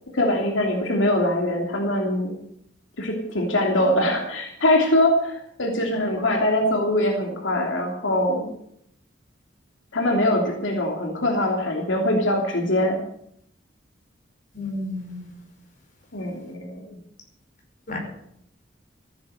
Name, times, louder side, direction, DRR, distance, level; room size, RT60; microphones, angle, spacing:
voice 1, 0.1-2.3 3.0-8.5 9.9-13.0 16.1-17.0, left 1 dB, 85° left, 1 dB, 3.0 m, -23 dB
voice 2, 14.5-15.3 17.9-18.0, left 2 dB, 45° left, 1 dB, 5.2 m, -31 dB
14.5 x 10.5 x 7.8 m, 0.72 s
head